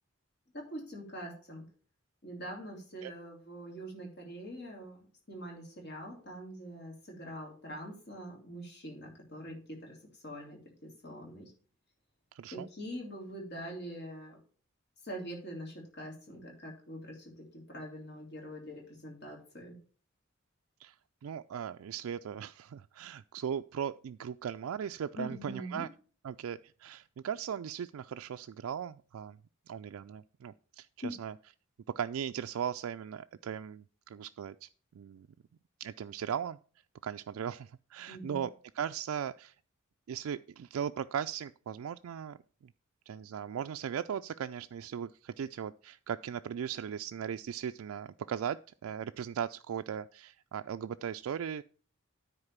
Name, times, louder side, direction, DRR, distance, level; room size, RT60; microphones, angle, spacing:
voice 1, 0.5-1.6 2.2-10.0 10.2-11.5 12.5-14.4 15.0-19.8 25.1-25.9 31.0-31.2 38.1-38.5, equal, 50° left, 0 dB, 3.3 m, -44 dB
voice 2, 12.3-12.7 20.8-21.0 21.2-25.9 26.2-29.4 29.7-30.9 31.2-31.3 31.9-34.7 34.9-35.3 35.8-36.6 37.0-38.5 38.7-39.5 40.1-42.4 43.1-51.6, right 8 dB, 80° right, 8 dB, 0.3 m, -38 dB
9.8 x 4.4 x 7.2 m, 0.41 s
head